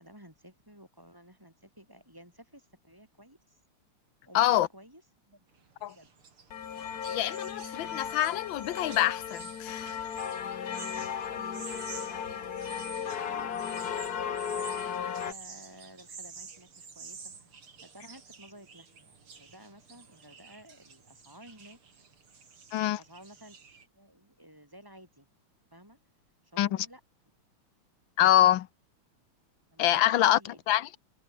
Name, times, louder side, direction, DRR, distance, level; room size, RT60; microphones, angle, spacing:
voice 1, 0.0-3.6 4.2-5.4 5.9-6.1 10.6-21.8 23.0-23.6 23.9-25.3 25.7-26.0 26.4-27.0 29.7-30.6, equal, 10° right, 6.0 m, -54 dB
voice 2, 4.3-4.7 5.8-5.9 7.0-9.9 22.7-23.0 26.6-26.7 28.2-28.7 29.8-30.9, left 13 dB, 70° left, 1.5 m, -25 dB
sound 1, 5.5-23.9, right 5 dB, 75° right, 4.0 m, -50 dB
sound 2, 6.5-15.3, left 8 dB, 50° left, 1.7 m, -36 dB
omnidirectional pair, 2.4 m